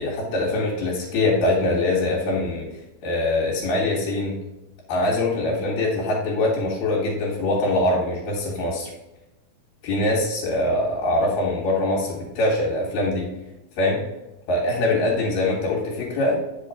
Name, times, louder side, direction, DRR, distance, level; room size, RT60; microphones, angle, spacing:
voice 1, 0.0-2.7 3.0-4.4 4.9-8.9 9.8-13.3 13.8-14.0 14.5-16.4, left 2 dB, 70° left, -4 dB, 3.1 m, -23 dB
8.7 x 5.6 x 3.6 m, 0.98 s
omnidirectional pair, 4.0 m